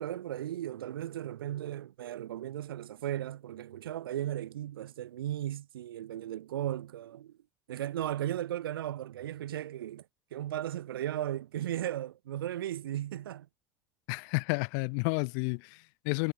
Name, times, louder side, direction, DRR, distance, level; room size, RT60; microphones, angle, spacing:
voice 1, 0.0-7.3 7.7-10.0 10.3-13.5, right 12 dB, 70° right, 0.5 m, -36 dB
voice 2, 14.1-16.3, left 37 dB, 55° left, 0.6 m, -31 dB
figure-of-eight pair, 65°, 12 cm